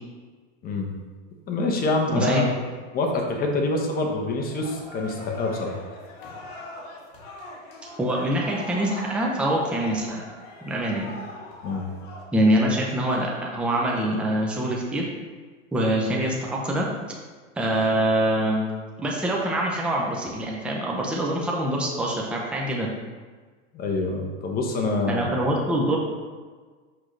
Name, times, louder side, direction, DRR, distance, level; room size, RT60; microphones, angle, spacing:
voice 1, 1.5-2.5 2.9-5.8 11.6-11.8 23.7-25.3, left 2 dB, 25° left, 2 dB, 0.9 m, -26 dB
voice 2, 2.2-2.5 8.0-10.2 10.6-11.1 12.3-15.1 15.7-17.2 17.6-18.6 19.0-22.9 25.1-26.0, right 1 dB, 5° right, -2 dB, 0.5 m, -24 dB
sound 1, 4.4-12.2, left 2 dB, 50° left, 1.5 m, -42 dB
6.3 x 6.1 x 3.2 m, 1.4 s
supercardioid pair, 150°, 38 cm